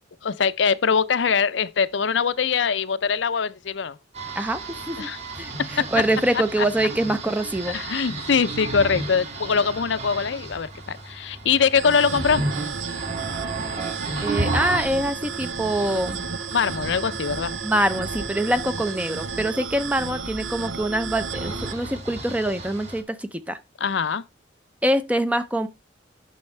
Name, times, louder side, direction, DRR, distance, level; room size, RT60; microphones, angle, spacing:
voice 1, 0.2-4.0 5.0-5.2 6.6-6.7 7.7-12.4 16.5-17.5 23.8-24.2, left 6 dB, 65° left, 0.5 m, -22 dB
sound 1, 4.1-23.0, right 2 dB, 35° right, 2.1 m, -34 dB
voice 2, 4.4-5.1 5.3-7.8 14.2-16.3 17.6-23.6 24.8-25.7, right 1 dB, 5° right, 0.5 m, -25 dB
sound 2, 11.7-21.7, right 5 dB, 75° right, 0.7 m, -33 dB
10.5 x 6.3 x 3.3 m
head